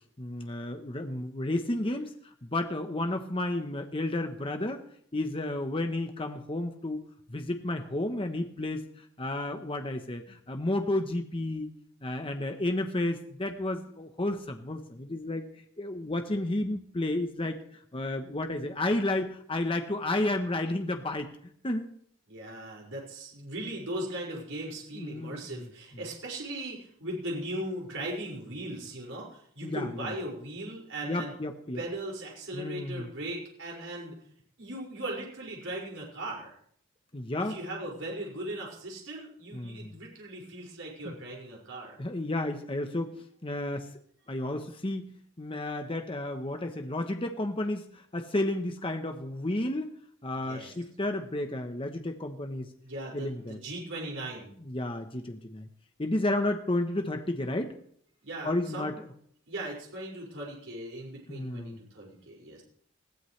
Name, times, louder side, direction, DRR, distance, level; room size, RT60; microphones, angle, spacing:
voice 1, 0.2-4.8 5.1-7.0 7.3-11.7 12.0-15.4 15.8-21.9 25.0-25.7 29.6-30.1 31.0-31.8 32.5-33.1 37.1-37.6 39.5-39.9 41.0-41.1 42.0-43.1 43.4-43.9 44.3-50.0 50.2-52.7 53.1-53.6 54.6-55.7 56.0-57.8 58.4-58.9 61.3-61.8, left 1 dB, 25° left, 5 dB, 1.0 m, -32 dB
voice 2, 22.3-31.3 31.7-34.2 34.6-36.6 37.4-42.0 50.3-50.7 52.8-54.6 58.2-58.9 59.5-62.6, right 1 dB, 75° right, -2 dB, 5.9 m, -38 dB
21.0 x 16.0 x 3.3 m, 0.63 s
head